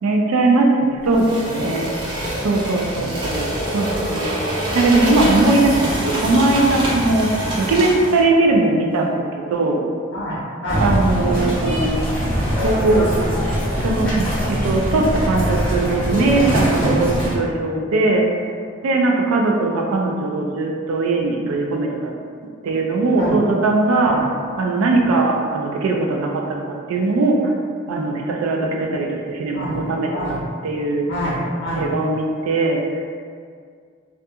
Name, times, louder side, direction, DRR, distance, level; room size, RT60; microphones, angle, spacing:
voice 1, 0.0-1.9 2.4-9.2 9.5-9.8 10.8-12.3 12.6-13.1 13.8-18.2 18.8-22.1 22.6-24.2 24.6-27.5 27.9-30.4 30.6-31.0 31.7-32.8, right 2 dB, 90° right, 1 dB, 0.3 m, -20 dB
sound 1, 1.1-8.2, right 1 dB, 25° right, 0.5 m, -25 dB
voice 2, 2.2-2.5 2.9-3.1 10.1-10.8 23.2-23.4 24.1-24.2 25.0-25.1 29.5-29.8 30.1-30.4 31.1-31.9, equal, 55° left, -6 dB, 0.6 m, -27 dB
sound 2, 10.7-17.3, equal, 5° left, 1.0 m, -22 dB
2.4 x 2.3 x 2.7 m, 2.1 s
head